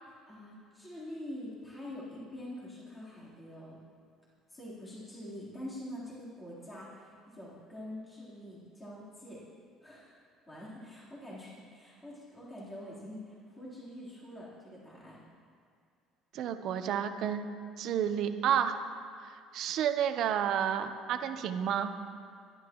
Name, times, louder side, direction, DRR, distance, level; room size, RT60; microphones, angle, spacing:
voice 1, 0.0-3.8 4.5-9.4 9.8-10.2 10.5-15.2, left 1 dB, 15° left, -9 dB, 3.9 m, -45 dB
voice 2, 16.3-17.5 17.8-18.8 19.2-21.9, right 9 dB, 55° right, 7 dB, 1.0 m, -31 dB
25.0 x 12.0 x 3.1 m, 2.3 s
cardioid pair, 145°, 0 cm